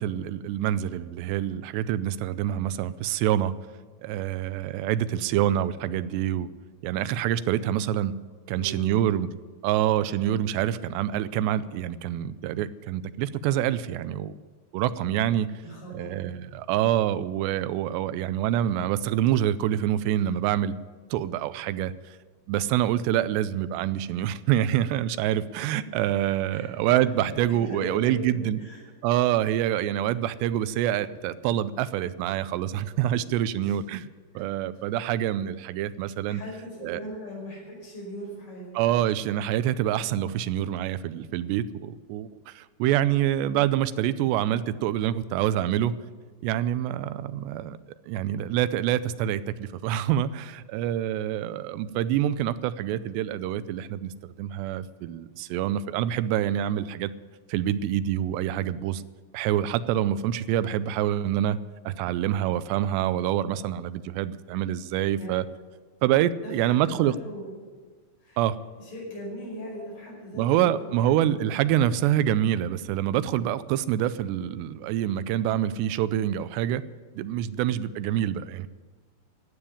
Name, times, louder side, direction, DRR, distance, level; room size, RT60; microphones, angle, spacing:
voice 1, 0.0-3.5 4.0-6.5 6.8-8.2 8.5-9.3 9.6-14.4 14.7-15.5 15.9-20.8 21.1-21.9 22.5-28.6 29.0-34.1 34.4-36.4 36.8-37.0 38.8-46.0 46.4-47.8 48.1-57.1 57.5-59.0 59.3-61.6 61.9-65.4 66.0-67.2 68.4-68.6 70.3-76.8 77.2-78.7, right 11 dB, 90° right, 15 dB, 2.8 m, -26 dB
voice 2, 8.6-9.1 15.6-16.1 26.5-26.7 27.1-28.8 33.6-33.8 34.3-34.4 36.3-38.7 65.1-65.3 66.4-67.6 68.2-68.4 68.8-71.7, equal, 30° left, -3 dB, 6.2 m, -40 dB
13.0 x 8.8 x 9.9 m, 1.4 s
omnidirectional pair, 4.8 m